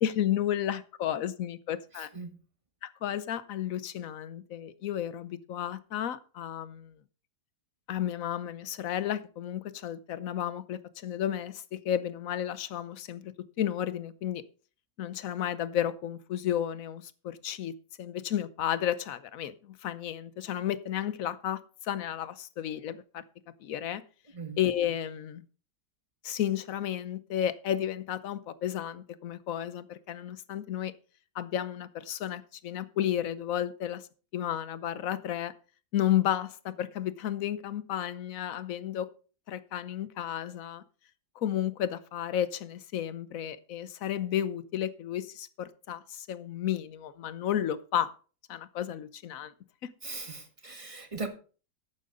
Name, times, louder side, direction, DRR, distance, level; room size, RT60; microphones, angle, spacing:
voice 1, 0.0-2.1 2.8-6.9 7.9-14.4 15.0-23.2 23.6-24.0 24.6-25.4 26.2-30.9 31.3-34.0 34.3-35.5 35.9-39.1 39.5-40.8 41.4-48.1 48.5-49.5, left 10 dB, 60° left, 14 dB, 1.0 m, -32 dB
voice 2, 1.9-2.3 24.3-24.6 50.0-51.3, right 4 dB, 20° right, 6 dB, 1.4 m, -39 dB
11.5 x 8.8 x 3.9 m, 0.38 s
omnidirectional pair, 1.9 m